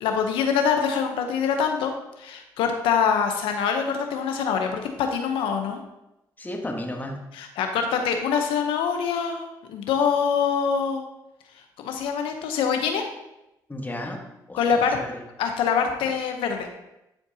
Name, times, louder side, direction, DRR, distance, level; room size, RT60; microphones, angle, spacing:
voice 1, 0.0-1.9 2.2-5.8 7.4-11.0 11.8-13.0 14.5-15.0 15.4-16.7, left 6 dB, 85° left, 5 dB, 0.9 m, -24 dB
voice 2, 6.4-7.2 13.7-15.2, left 1 dB, 20° left, 1 dB, 1.4 m, -34 dB
11.5 x 4.6 x 2.8 m, 0.90 s
supercardioid pair, 55°, 9 cm